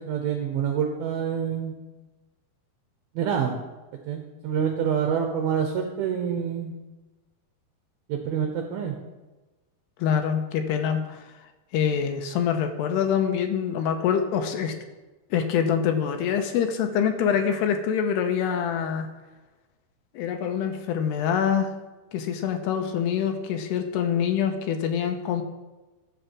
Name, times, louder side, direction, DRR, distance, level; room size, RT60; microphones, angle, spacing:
voice 1, 0.0-1.7 3.2-3.6 4.1-6.8 8.1-8.9, right 7 dB, 75° right, 3 dB, 2.4 m, -27 dB
voice 2, 10.0-11.2 11.7-14.7 15.3-19.1 20.1-21.7 22.1-25.4, left 8 dB, 85° left, 5 dB, 2.9 m, -25 dB
11.5 x 5.6 x 7.4 m, 1.2 s
omnidirectional pair, 4.8 m